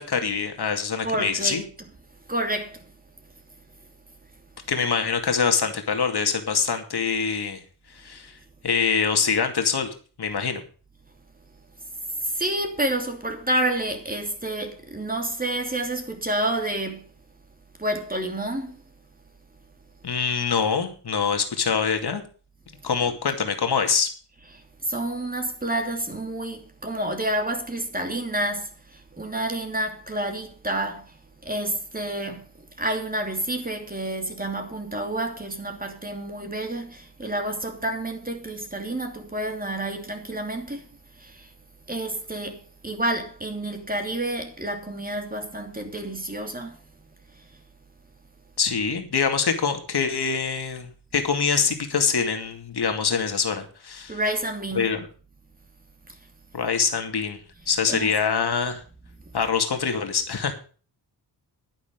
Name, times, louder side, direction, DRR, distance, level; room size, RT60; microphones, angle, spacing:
voice 1, 0.0-1.6 4.7-7.6 7.9-8.3 8.6-10.6 20.0-22.2 22.8-24.1 48.6-54.2 54.7-55.1 56.5-57.4 57.7-58.8 59.3-60.5, left 6 dB, 70° left, 2.5 m, -24 dB
voice 2, 1.0-1.7 2.3-2.8 12.3-17.0 17.8-18.8 24.8-28.7 29.2-31.1 31.4-32.4 32.8-40.9 41.2-41.5 41.9-42.6 42.8-46.8 54.1-54.9 57.9-58.1, right 1 dB, 20° right, 2.9 m, -29 dB
10.5 x 10.5 x 5.3 m
wide cardioid pair, 90°, 41 cm